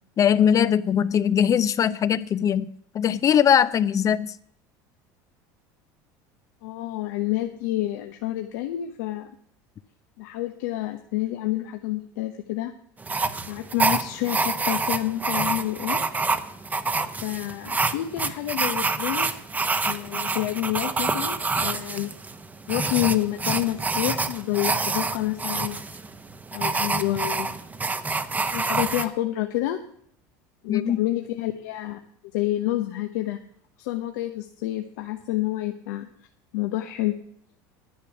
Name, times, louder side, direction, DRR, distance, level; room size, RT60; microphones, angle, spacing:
voice 1, 0.2-4.3 30.7-31.0, left 8 dB, 35° left, 0.6 m, -21 dB
voice 2, 6.6-9.3 10.2-12.7 13.5-16.0 17.2-19.3 19.8-22.1 22.7-25.8 26.5-27.5 28.5-29.8 30.6-32.0 32.3-33.4 33.8-36.1 36.5-37.2, left 15 dB, 80° left, 0.9 m, -28 dB
sound 1, 13.0-29.1, right 3 dB, 15° right, 0.9 m, -27 dB
10.0 x 10.0 x 6.0 m
supercardioid pair, 100°, 9 cm